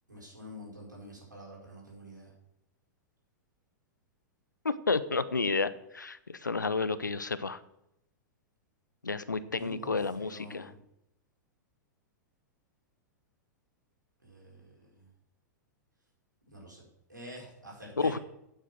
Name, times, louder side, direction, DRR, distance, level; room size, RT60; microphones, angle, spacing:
voice 1, 0.1-2.3 9.5-10.7 14.2-15.1 16.5-16.8 17.1-18.1, equal, 90° right, -3 dB, 4.9 m, -48 dB
voice 2, 4.6-7.6 9.0-10.7 18.0-18.2, left 4 dB, 85° left, 15 dB, 0.7 m, -31 dB
9.3 x 7.4 x 6.1 m, 0.82 s
figure-of-eight pair, 100°, 10 cm